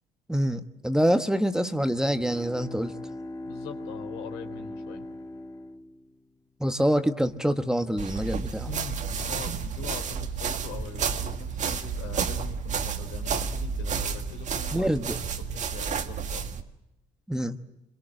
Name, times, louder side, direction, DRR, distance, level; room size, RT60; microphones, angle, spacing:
voice 1, 0.3-2.9 6.6-8.7 14.7-15.2 17.3-17.6, equal, 5° right, 9 dB, 1.2 m, -26 dB
Bowed string instrument, 2.0-6.6, left 1 dB, 20° left, 1.6 m, -40 dB
voice 2, 3.4-5.1 8.6-16.5, left 8 dB, 90° left, 6 dB, 3.5 m, -42 dB
sound 1, 8.0-16.6, right 6 dB, 45° right, 1.6 m, -31 dB
26.5 x 22.0 x 7.6 m, 0.88 s
cardioid pair, 105°, 17 cm